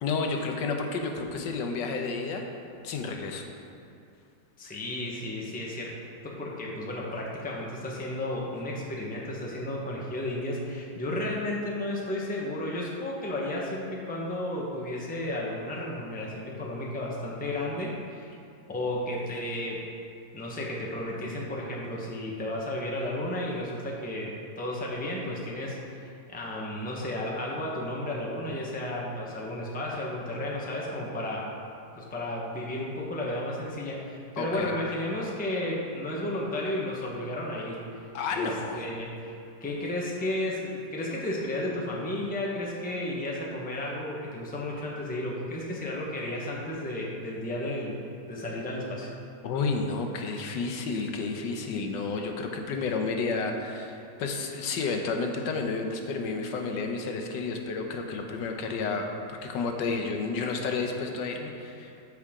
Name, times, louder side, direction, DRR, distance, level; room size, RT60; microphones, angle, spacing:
voice 1, 0.0-2.4 2.8-3.4 34.4-34.7 38.1-38.8 49.4-61.9, left 4 dB, 85° left, 3 dB, 1.4 m, -31 dB
voice 2, 4.6-5.9 6.2-18.4 18.7-19.8 20.3-24.3 24.6-31.5 32.0-38.0 38.3-39.3 39.6-48.0 48.3-49.1, left 1 dB, 5° left, -3 dB, 0.7 m, -33 dB
13.0 x 4.7 x 3.7 m, 2.6 s
omnidirectional pair, 1.9 m